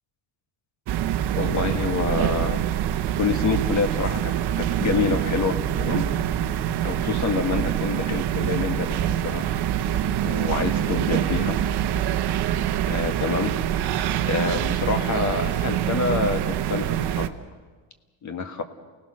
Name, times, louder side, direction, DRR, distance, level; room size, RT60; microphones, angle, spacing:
sound 1, 0.9-17.3, right 11 dB, 55° right, 1.0 m, -25 dB
voice 1, 1.3-2.6 3.1-6.1 6.8-9.5 10.2-11.6 12.8-13.6 14.3-17.4 18.2-18.6, left 5 dB, 35° left, 8 dB, 1.5 m, -27 dB
28.5 x 18.5 x 6.4 m, 1.3 s
cardioid pair, 170°, 49 cm